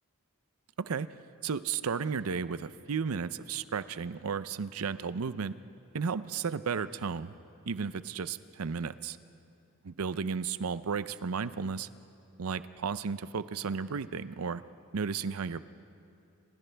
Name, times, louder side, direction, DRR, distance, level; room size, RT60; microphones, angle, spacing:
voice 1, 1.4-5.5 5.9-7.3 7.7-9.2 9.9-11.9 12.4-14.6 14.9-15.6, right 5 dB, 80° right, 14 dB, 0.6 m, -33 dB
28.5 x 26.5 x 3.4 m, 2.6 s
head